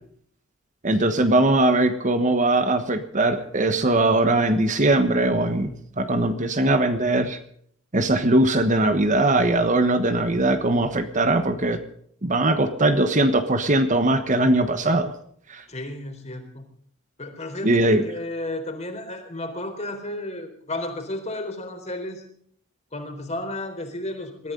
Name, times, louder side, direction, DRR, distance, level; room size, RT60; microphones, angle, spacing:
voice 1, 0.8-5.7 6.0-7.4 7.9-11.8 12.2-15.1 15.5-15.6 17.6-18.0, right 2 dB, 35° right, 9 dB, 1.3 m, -20 dB
voice 2, 15.7-16.6 17.2-22.3 22.9-24.5, left 1 dB, 35° left, 6 dB, 3.9 m, -33 dB
22.0 x 14.5 x 3.9 m, 0.63 s
head